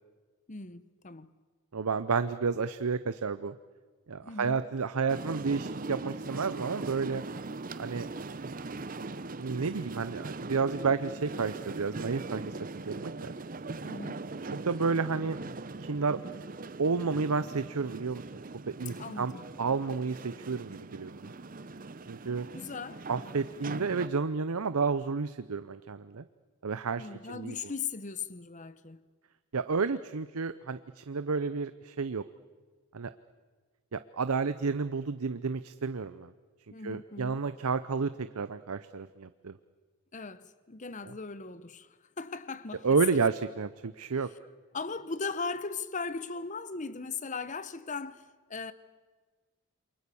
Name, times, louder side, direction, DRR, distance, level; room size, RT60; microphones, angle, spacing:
voice 1, 0.5-1.3 4.2-4.7 13.8-14.2 18.8-19.3 22.5-23.0 27.0-29.0 36.7-37.5 40.1-41.9 42.2-43.2 44.7-48.2 48.5-48.7, left 4 dB, 35° left, 0.9 m, -38 dB
voice 2, 1.7-3.5 4.1-7.2 7.8-8.1 9.4-13.3 14.5-15.4 15.8-16.2 16.8-18.4 18.8-19.3 19.6-21.3 22.1-22.5 23.1-26.2 26.6-27.5 29.5-32.2 32.9-33.1 33.9-36.3 36.8-39.5 41.1-41.2 42.8-44.3, right 5 dB, 80° right, 0.7 m, -31 dB
sound 1, 5.1-24.1, right 3 dB, 40° right, 0.7 m, -41 dB
28.5 x 23.5 x 7.0 m
head